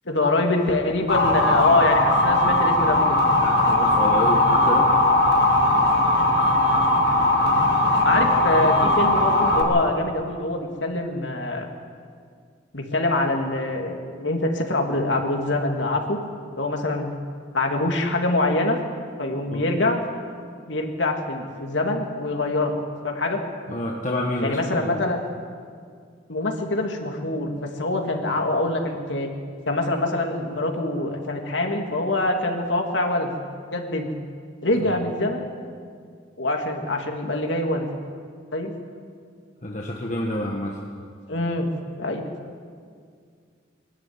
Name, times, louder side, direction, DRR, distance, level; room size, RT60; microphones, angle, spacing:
voice 1, 0.1-3.2 8.0-11.7 12.7-16.2 16.5-17.1 17.5-18.8 19.2-20.0 20.7-23.4 24.4-25.2 26.3-29.3 29.7-33.3 33.7-34.1 34.6-35.5 36.4-37.9 38.5-38.7 41.3-41.7 42.0-42.2, left 2 dB, 80° left, 2 dB, 2.6 m, -24 dB
Motor vehicle (road) / Siren, 1.1-9.6, left 1 dB, 60° left, 2.6 m, -19 dB
voice 2, 3.4-4.9 19.5-19.6 23.7-24.9 39.6-40.8, left 1 dB, 40° left, -1 dB, 1.7 m, -28 dB
21.5 x 13.5 x 9.7 m, 2.1 s
head